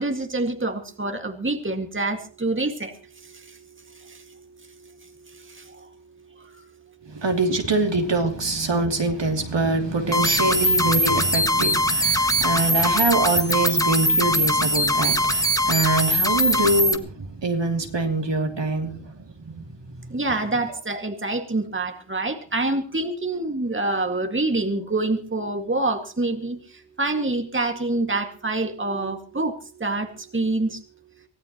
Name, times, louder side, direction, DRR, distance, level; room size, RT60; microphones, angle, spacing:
voice 1, 0.0-2.9 4.0-4.2 5.5-5.8 20.1-26.6 27.0-30.8, right 2 dB, 25° right, 2.2 m, -26 dB
voice 2, 7.0-20.1, right 3 dB, 65° right, 3.0 m, -24 dB
sound 1, 10.1-17.0, left 1 dB, 5° left, 1.6 m, -21 dB
24.5 x 16.5 x 3.1 m
wide cardioid pair, 70°, 46 cm